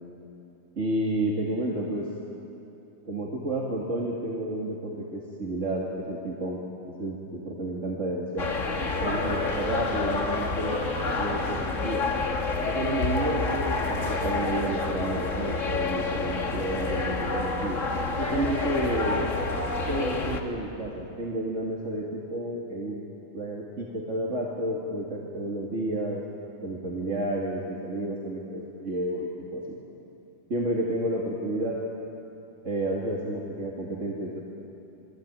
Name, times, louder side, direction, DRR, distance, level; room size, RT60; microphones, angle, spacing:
voice 1, 0.8-2.1 3.1-6.6 7.0-8.5 9.0-10.9 11.2-12.0 12.6-17.8 18.2-19.3 19.9-23.0 23.3-26.2 26.6-29.6 30.5-31.9 32.6-34.4, right 1 dB, 65° right, -3 dB, 2.8 m, -31 dB
sound 1, 8.4-20.4, left 3 dB, 70° left, 2.2 m, -28 dB
29.0 x 21.5 x 9.0 m, 2.9 s
omnidirectional pair, 1.4 m